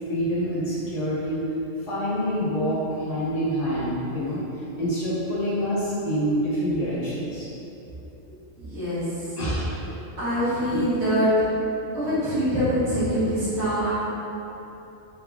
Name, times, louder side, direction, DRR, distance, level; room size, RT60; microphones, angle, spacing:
voice 1, 0.1-1.4 1.8-4.4 4.8-7.5 9.4-9.6 10.7-10.8, equal, 65° left, -10 dB, 1.4 m, -26 dB
voice 2, 8.6-9.1 10.2-11.3 11.9-13.9, equal, 60° right, -12 dB, 1.4 m, -24 dB
4.0 x 2.7 x 2.4 m, 3.0 s
omnidirectional pair, 1.3 m